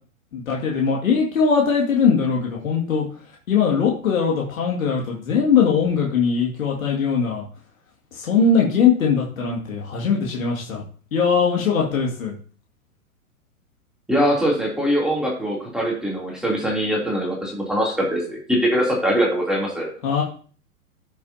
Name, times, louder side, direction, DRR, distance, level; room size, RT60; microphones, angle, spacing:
voice 1, 0.3-3.0 3.5-7.4 8.1-10.8 11.1-12.3 20.0-20.2, left 6 dB, 65° left, -2 dB, 2.4 m, -20 dB
voice 2, 14.1-19.9, equal, ahead, -4 dB, 3.1 m, -22 dB
14.0 x 7.0 x 2.9 m, 0.43 s
figure-of-eight pair, 110°, 43 cm